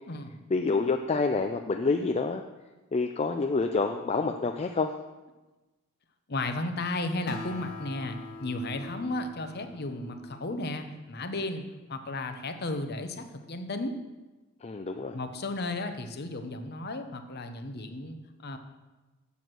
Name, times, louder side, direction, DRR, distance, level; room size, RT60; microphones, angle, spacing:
voice 1, 0.5-2.4 2.9-4.9 14.6-15.2, left 4 dB, 30° left, 5 dB, 0.3 m, -27 dB
voice 2, 6.3-11.6 11.9-14.0 15.1-18.6, left 2 dB, 45° left, 7 dB, 0.8 m, -34 dB
Acoustic guitar, 7.3-11.0, left 3 dB, 75° left, 1.0 m, -44 dB
7.1 x 6.1 x 7.7 m, 1.1 s
head